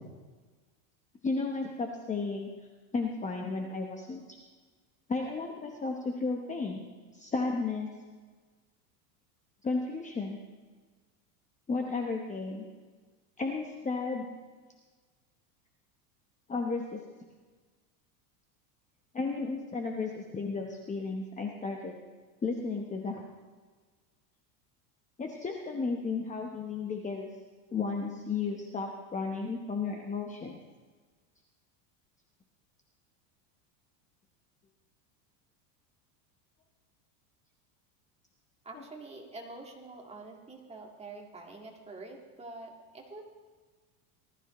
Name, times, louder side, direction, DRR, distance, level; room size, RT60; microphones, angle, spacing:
voice 1, 1.2-2.5 2.9-4.2 5.1-7.9 9.6-10.4 11.7-12.6 13.4-14.3 16.5-17.0 19.1-21.9 22.4-23.2 25.2-27.3 27.7-30.6 38.7-38.8, left 4 dB, 15° left, 1 dB, 1.0 m, -33 dB
voice 2, 38.6-43.4, right 3 dB, 15° right, 0 dB, 1.9 m, -46 dB
19.5 x 13.0 x 3.1 m, 1.4 s
supercardioid pair, 130°, 49 cm